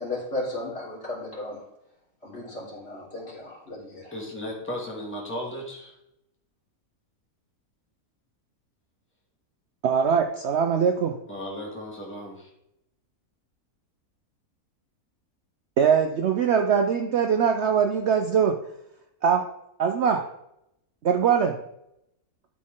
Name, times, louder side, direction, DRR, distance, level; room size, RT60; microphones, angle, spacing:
voice 1, 0.0-1.6 2.2-4.1, left 2 dB, 40° left, -6 dB, 3.3 m, -35 dB
voice 2, 4.1-5.9 11.3-12.5, equal, 10° left, -2 dB, 1.8 m, -35 dB
voice 3, 9.8-11.1 15.8-18.5 19.2-19.4 19.8-20.2 21.0-21.6, right 7 dB, 60° right, 4 dB, 0.8 m, -22 dB
12.0 x 4.2 x 3.7 m, 0.81 s
omnidirectional pair, 1.6 m